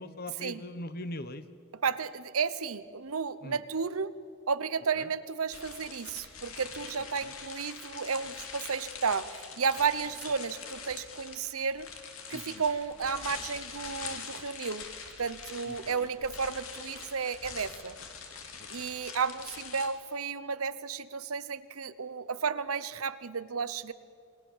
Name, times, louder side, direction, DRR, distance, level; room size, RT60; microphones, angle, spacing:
voice 1, 0.0-1.4 3.4-3.6 5.0-5.1 7.2-7.3 12.3-12.6 15.7-16.1 18.6-18.9, left 1 dB, 45° left, 12 dB, 1.2 m, -41 dB
voice 2, 1.7-4.1 4.5-11.9 12.3-14.9 15.2-18.0 18.7-23.9, right 5 dB, 85° right, 14 dB, 0.9 m, -33 dB
sound 1, 5.5-19.9, left 6 dB, 75° left, 2.8 m, -44 dB
28.0 x 20.0 x 7.4 m, 2.3 s
head